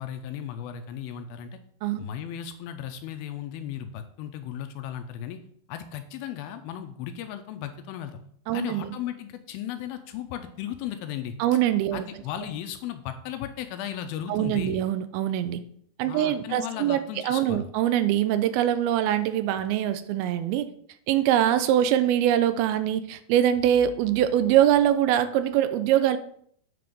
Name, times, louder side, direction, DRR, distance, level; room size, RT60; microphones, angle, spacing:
voice 1, 0.0-1.6 2.0-5.4 5.7-8.2 8.5-11.3 11.9-14.8 16.1-17.7, left 10 dB, 80° left, 8 dB, 2.3 m, -36 dB
voice 2, 8.5-8.9 11.4-12.0 14.3-15.6 16.0-20.7 21.1-26.2, right 11 dB, 85° right, 11 dB, 2.3 m, -23 dB
9.2 x 3.4 x 5.1 m, 0.64 s
omnidirectional pair, 4.5 m